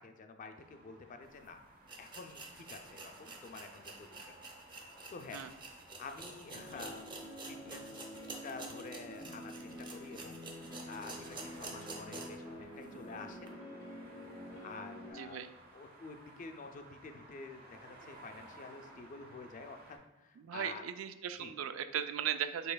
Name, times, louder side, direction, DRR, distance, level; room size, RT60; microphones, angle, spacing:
voice 1, 0.0-1.6 2.0-4.3 5.1-5.4 6.0-7.1 7.5-8.0 8.4-13.5 14.6-15.4 15.7-20.9 21.4-21.5, left 4 dB, 40° left, 6 dB, 0.4 m, -49 dB
sound 1, 0.5-20.0, right 2 dB, 50° right, 0.9 m, -58 dB
sound 2, 1.3-1.4 1.8-12.5 12.8-12.9 13.4-13.5, right 2 dB, 25° right, 0.6 m, -49 dB
sound 3, 6.5-15.1, equal, 70° left, 0.8 m, -48 dB
voice 2, 15.1-15.5 20.4-22.7, right 9 dB, 75° right, 11 dB, 0.3 m, -37 dB
5.4 x 4.0 x 2.2 m, 0.99 s
head